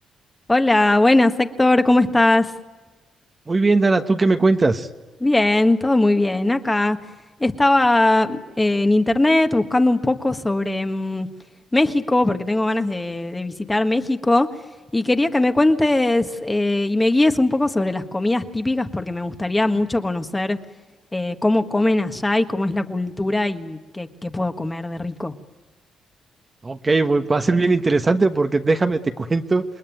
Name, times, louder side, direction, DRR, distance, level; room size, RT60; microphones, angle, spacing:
voice 1, 0.5-2.5 5.2-7.0 7.4-11.3 11.7-14.5 14.9-20.6 21.1-25.3, left 2 dB, 15° left, 7 dB, 1.5 m, -20 dB
voice 2, 3.5-4.9 26.6-29.6, right 3 dB, 25° right, 7 dB, 1.2 m, -19 dB
28.5 x 20.5 x 9.3 m, 1.3 s
cardioid pair, 90°, 0 cm